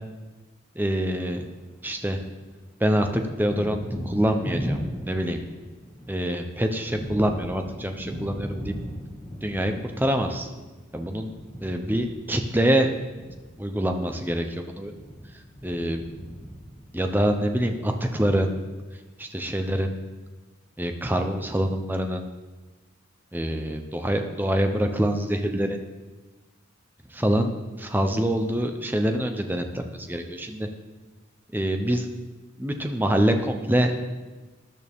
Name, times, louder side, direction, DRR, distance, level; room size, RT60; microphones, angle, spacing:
voice 1, 0.8-1.4 1.8-2.2 2.8-5.4 6.1-8.7 9.4-10.5 10.9-11.3 11.6-12.9 13.6-14.9 15.6-16.0 16.9-18.5 19.2-19.9 20.8-22.2 23.3-25.8 27.1-27.5 27.8-30.7 31.5-32.1 32.6-33.9, equal, 10° right, 5 dB, 0.7 m, -25 dB
Thunder, 1.5-2.4 2.7-18.0, equal, 5° left, 2.0 m, -37 dB
13.0 x 11.0 x 3.6 m, 1.2 s
head